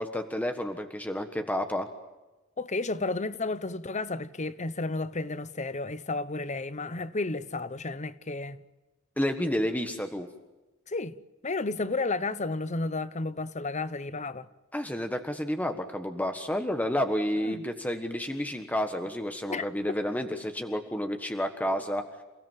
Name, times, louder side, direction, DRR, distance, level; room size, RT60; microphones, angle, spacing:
voice 1, 0.0-1.9 9.2-10.3 14.7-22.0, equal, 5° left, 1.4 m, -30 dB
voice 2, 2.6-8.6 10.9-11.1 11.4-14.5 17.4-17.6 19.5-19.7, left 3 dB, 35° left, 1.0 m, -32 dB
29.0 x 17.5 x 9.2 m
head